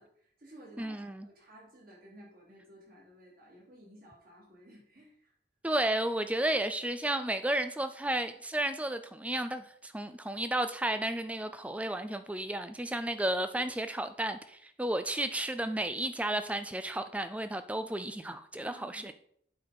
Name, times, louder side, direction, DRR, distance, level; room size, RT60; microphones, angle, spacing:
voice 1, 0.0-1.0 1.2-5.3 18.6-19.1, right 1 dB, 45° right, -4 dB, 3.4 m, -55 dB
voice 2, 0.8-1.3 5.6-19.1, right 1 dB, 5° right, 10 dB, 0.4 m, -33 dB
8.6 x 4.1 x 5.4 m, 0.65 s
head